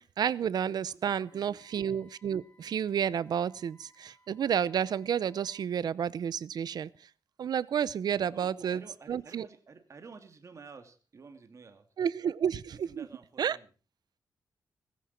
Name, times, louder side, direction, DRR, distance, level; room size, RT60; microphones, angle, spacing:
voice 1, 0.0-6.9 7.4-8.8 9.1-9.4 12.0-13.0 13.4-13.6, right 8 dB, 75° right, 20 dB, 0.8 m, -31 dB
voice 2, 0.9-1.6 8.2-11.9 12.7-13.7, right 4 dB, 45° right, 7 dB, 2.8 m, -51 dB
Wind instrument woodwind instrument, 1.2-5.7, right 1 dB, 15° left, 5.4 m, -65 dB
18.0 x 15.5 x 4.4 m, 0.37 s
wide cardioid pair, 125°, 7 cm